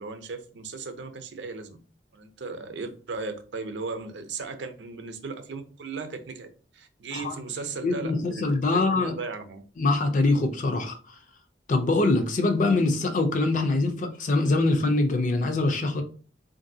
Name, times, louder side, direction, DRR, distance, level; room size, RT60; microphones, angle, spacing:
voice 1, 0.0-1.8 2.1-9.6, right 4 dB, 80° right, 0.5 m, -37 dB
voice 2, 7.8-9.1 9.8-11.0 11.7-16.0, left 2 dB, 45° left, 0.5 m, -23 dB
3.0 x 2.6 x 2.6 m
head